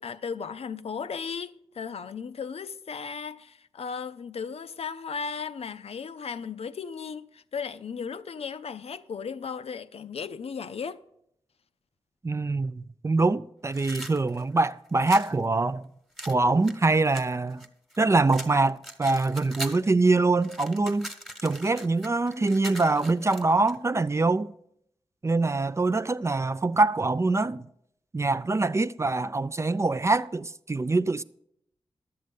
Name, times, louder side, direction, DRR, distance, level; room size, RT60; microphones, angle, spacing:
voice 1, 0.0-11.0, left 6 dB, 70° left, 0.5 m, -36 dB
voice 2, 12.2-15.8 16.3-17.6 18.0-21.1 21.4-24.5 25.2-27.6 28.1-31.2, right 3 dB, 25° right, 0.3 m, -24 dB
sound 1, 13.7-15.3 16.2-18.0 18.3-19.9 20.2-23.8, right 1 dB, ahead, 1.2 m, -41 dB
11.0 x 7.7 x 5.3 m
wide cardioid pair, 70°, 11 cm